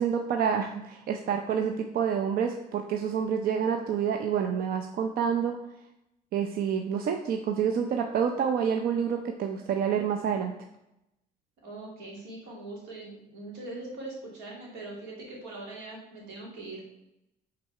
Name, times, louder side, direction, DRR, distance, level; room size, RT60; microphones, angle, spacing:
voice 1, 0.0-5.6 6.3-10.5, right 7 dB, 60° right, 4 dB, 0.6 m, -28 dB
voice 2, 11.6-16.8, right 2 dB, 90° right, -3 dB, 2.4 m, -41 dB
5.4 x 4.0 x 5.7 m, 0.86 s
cardioid pair, 110°, 17 cm